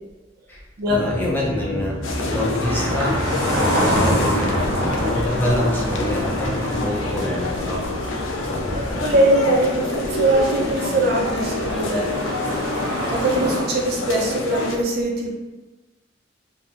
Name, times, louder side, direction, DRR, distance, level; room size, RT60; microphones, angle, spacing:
sound 1, 0.9-9.4, right 2 dB, 45° left, 1.2 m, -33 dB
voice 1, 0.9-7.9 8.4-9.1, left 1 dB, 10° left, -4 dB, 0.4 m, -26 dB
sound 2, 2.0-14.8, left 2 dB, 80° left, 0.4 m, -27 dB
sound 3, 2.6-13.6, equal, 85° right, 0.7 m, -27 dB
voice 2, 8.8-12.1 13.1-15.3, right 1 dB, 55° right, -2 dB, 0.5 m, -21 dB
2.6 x 2.0 x 2.4 m, 1.2 s
head